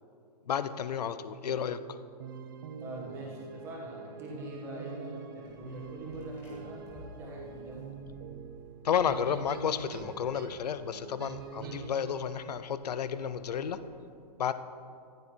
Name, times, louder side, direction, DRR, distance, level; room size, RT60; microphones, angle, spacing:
voice 1, 0.5-1.8 8.8-13.8 14.4-14.5, left 8 dB, 70° left, 13 dB, 0.7 m, -31 dB
sound 1, 1.5-12.5, right 7 dB, 35° right, 0.6 m, -45 dB
voice 2, 2.8-7.8, equal, 10° right, -3 dB, 1.7 m, -43 dB
sound 2, 5.4-14.0, left 1 dB, 10° left, 2.1 m, -55 dB
14.5 x 10.0 x 4.5 m, 2.5 s
hypercardioid pair, 175°, 21 cm